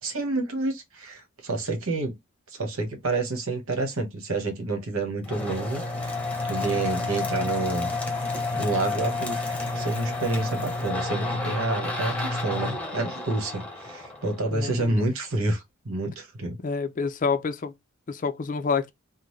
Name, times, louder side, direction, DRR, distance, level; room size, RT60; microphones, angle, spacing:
voice 1, 0.0-2.1 2.5-7.9 8.5-9.4 9.7-16.6, right 2 dB, 75° right, 1.3 m, -29 dB
sound 1, 5.2-14.8, left 2 dB, 5° left, 1.0 m, -30 dB
voice 2, 14.5-14.9 16.6-17.7 18.1-18.9, left 5 dB, 40° left, 0.5 m, -27 dB
3.7 x 2.1 x 3.1 m
head